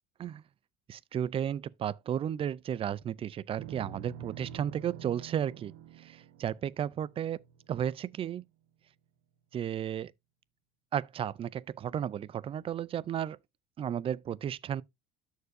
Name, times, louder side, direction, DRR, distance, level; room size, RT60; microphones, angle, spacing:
voice 1, 0.9-5.7 6.0-7.4 7.7-8.4 9.5-10.1 10.9-13.4 13.8-14.8, right 9 dB, 30° right, 0.4 m, -33 dB
sound 1, 3.6-8.0, right 8 dB, 65° right, 1.2 m, -47 dB
13.0 x 4.7 x 2.6 m
cardioid pair, 125°, 19 cm